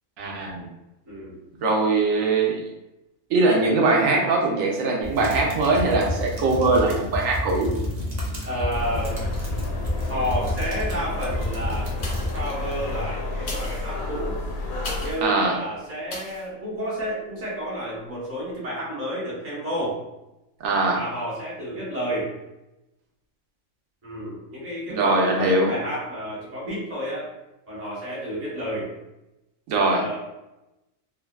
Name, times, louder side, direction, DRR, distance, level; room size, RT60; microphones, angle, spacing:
voice 1, 0.2-0.7 1.6-2.7 3.3-7.7 15.2-15.6 20.6-21.0 24.9-25.7 29.7-30.0, right 3 dB, 80° right, 0 dB, 1.0 m, -21 dB
voice 2, 1.1-1.4 8.4-9.2 10.1-11.9 12.3-14.4 15.0-20.0 20.9-22.3 24.0-27.3 27.7-28.9 29.8-30.2, equal, 15° right, -8 dB, 0.6 m, -30 dB
sound 1, 5.0-13.0, left 1 dB, 55° right, 0.4 m, -30 dB
sound 2, 8.7-15.1, left 2 dB, 80° left, 1.0 m, -31 dB
sound 3, 12.0-12.5 13.3-15.3 16.1-16.5 17.0-17.1, left 2 dB, 55° left, 0.6 m, -37 dB
2.6 x 2.2 x 2.2 m, 0.95 s
omnidirectional pair, 1.4 m